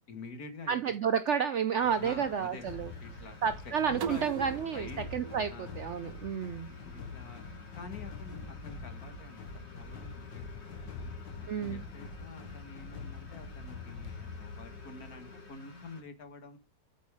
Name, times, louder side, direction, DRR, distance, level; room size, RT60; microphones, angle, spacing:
voice 1, 0.1-0.8 2.0-2.7 3.0-3.4 3.9-5.1 5.5-5.8 6.7-7.5 7.7-9.5 9.8-11.1 11.4-16.6, left 3 dB, 55° left, 7 dB, 1.9 m, -48 dB
voice 2, 0.7-2.9 3.4-6.7 11.5-11.8, right 7 dB, 85° right, 11 dB, 0.6 m, -31 dB
sound 1, 1.7-16.0, left 2 dB, 40° left, 2.2 m, -53 dB
sound 2, 1.8-15.5, left 4 dB, 85° left, 1.8 m, -45 dB
sound 3, 4.0-6.8, right 7 dB, 60° right, 1.2 m, -42 dB
8.3 x 5.2 x 4.8 m, 0.28 s
omnidirectional pair, 1.9 m